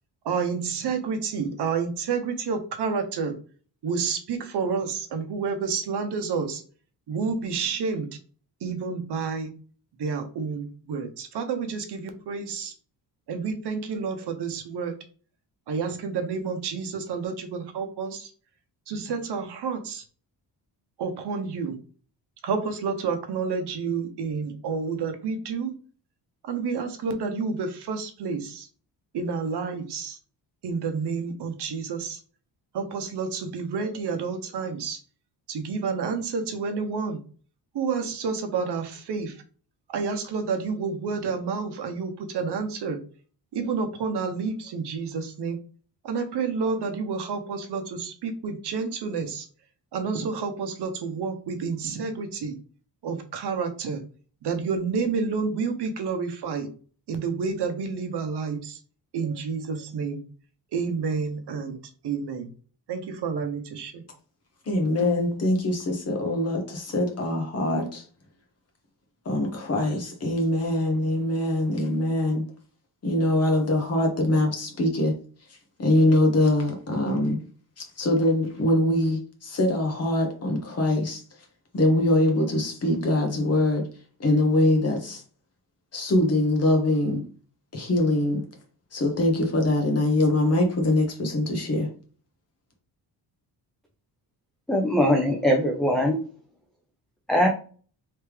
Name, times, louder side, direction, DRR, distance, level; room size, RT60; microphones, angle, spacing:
voice 1, 0.2-3.3 3.8-6.6 7.1-8.1 8.6-9.5 10.0-12.7 13.3-14.9 15.7-18.3 18.9-20.0 21.0-21.8 22.4-25.7 26.4-28.7 29.1-30.2 30.6-32.2 32.7-35.0 35.5-37.2 37.7-39.3 39.9-43.0 43.5-45.6 46.0-49.5 49.9-52.6 53.0-54.0 54.4-56.7 57.1-58.8 59.1-60.2 60.7-61.8 62.0-62.5 62.9-64.0, right 5 dB, 65° right, 0.8 m, -29 dB
voice 2, 64.7-68.0 69.2-72.4 73.0-75.1 75.8-77.4 77.8-81.2 81.7-83.9 84.2-85.2 85.9-87.2 87.7-88.4 88.9-91.9, left 1 dB, 35° left, 1.0 m, -23 dB
voice 3, 94.7-96.2 97.3-97.5, equal, ahead, 0.4 m, -21 dB
3.3 x 3.1 x 3.4 m
wide cardioid pair, 160°, 43 cm